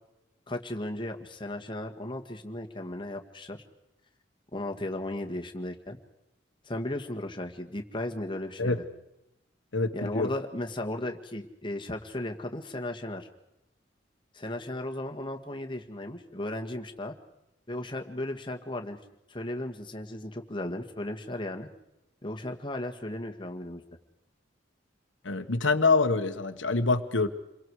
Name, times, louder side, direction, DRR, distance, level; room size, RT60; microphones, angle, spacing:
voice 1, 0.5-3.6 4.5-6.0 6.7-8.8 9.9-13.3 14.3-17.2 17.7-19.0 19.3-21.7 22.2-23.8, left 1 dB, 25° left, 5 dB, 1.9 m, -35 dB
voice 2, 9.7-10.3 25.2-27.3, left 3 dB, 85° left, 6 dB, 1.4 m, -25 dB
28.5 x 23.0 x 4.9 m, 0.92 s
head